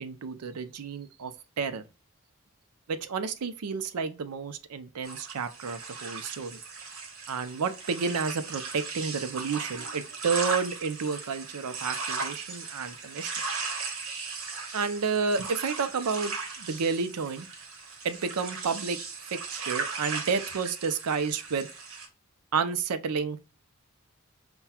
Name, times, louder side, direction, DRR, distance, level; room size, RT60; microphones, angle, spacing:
voice 1, 0.0-1.8 2.9-6.6 7.3-13.3 14.7-17.5 18.0-19.0 19.3-21.7 22.5-23.4, right 5 dB, 90° right, 0.5 m, -31 dB
sound 1, 5.0-22.1, right 4 dB, 60° right, 1.1 m, -37 dB
5.6 x 2.3 x 2.2 m
head